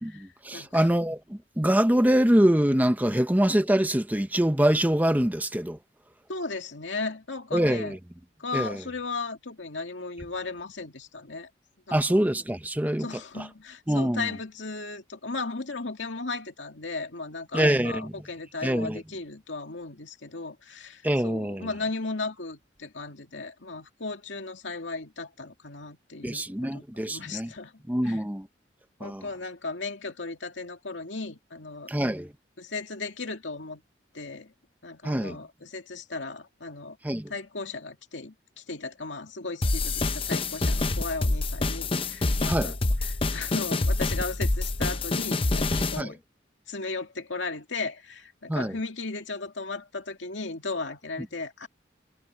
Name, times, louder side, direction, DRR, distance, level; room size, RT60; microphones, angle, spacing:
voice 1, 0.0-5.8 7.5-8.0 8.5-8.8 11.9-13.1 13.4-13.5 13.9-14.3 17.5-18.1 18.6-19.0 21.0-21.7 26.2-27.5 27.9-28.5 29.0-29.3 31.9-32.3 35.0-35.4 37.0-37.3 42.4-42.7 46.0-46.1 48.5-48.8, right 1 dB, 10° right, 0.8 m, -24 dB
voice 2, 0.5-0.9 6.3-8.0 8.4-11.5 11.9-12.2 13.0-26.4 26.7-28.2 29.0-31.9 32.6-33.8 34.1-34.5 34.8-37.0 37.3-42.8 43.0-46.2 46.7-51.7, left 3 dB, 80° left, 2.4 m, -36 dB
sound 1, 39.6-46.0, left 2 dB, 30° left, 0.7 m, -27 dB
head